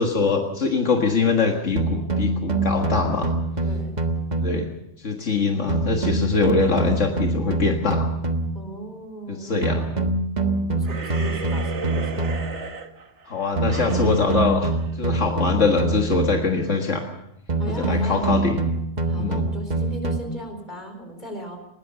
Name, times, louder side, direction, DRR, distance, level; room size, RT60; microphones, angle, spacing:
voice 1, 0.0-3.3 4.4-4.7 5.0-8.1 9.3-9.9 13.3-14.7 15.0-17.0 17.7-18.6 19.2-19.4, left 4 dB, 75° left, 2 dB, 2.1 m, -23 dB
sound 1, 1.8-4.8 5.7-8.7 9.6-12.6 13.6-16.6 17.5-20.2, right 2 dB, 35° right, 1.5 m, -25 dB
voice 2, 3.6-3.9 8.5-9.7 10.5-12.3 17.6-18.2 19.1-21.6, right 1 dB, 40° left, 5 dB, 4.8 m, -36 dB
sound 2, 10.8-15.6, right 3 dB, 65° right, 1.8 m, -35 dB
20.5 x 19.0 x 6.9 m, 0.82 s
omnidirectional pair, 1.3 m